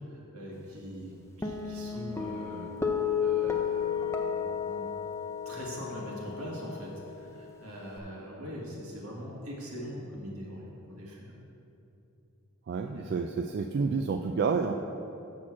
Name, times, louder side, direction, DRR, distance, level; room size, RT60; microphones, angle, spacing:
voice 1, 0.0-2.7 3.2-5.0 5.5-11.3 12.8-13.1, equal, 75° right, -4 dB, 2.0 m, -42 dB
Guitar, 1.4-8.0, left 7 dB, 10° left, 0.5 m, -33 dB
voice 2, 12.7-14.7, right 5 dB, 50° right, 5 dB, 0.3 m, -29 dB
6.4 x 6.1 x 7.2 m, 2.8 s
head